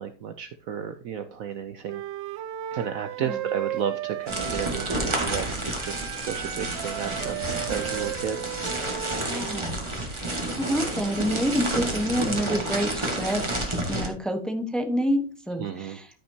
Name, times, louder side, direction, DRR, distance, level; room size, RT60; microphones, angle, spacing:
voice 1, 0.0-2.0 2.7-8.4 15.6-16.0, right 8 dB, 70° right, 9 dB, 0.8 m, -33 dB
Wind instrument woodwind instrument, 1.9-5.5 5.8-9.7, right 12 dB, 85° right, 1.4 m, -35 dB
sound 1, 4.3-14.1, right 1 dB, 15° right, 1.5 m, -30 dB
voice 2, 9.3-9.8 10.6-13.5 13.9-16.2, equal, ahead, 5 dB, 0.7 m, -28 dB
13.5 x 5.7 x 2.8 m, 0.36 s
omnidirectional pair, 2.0 m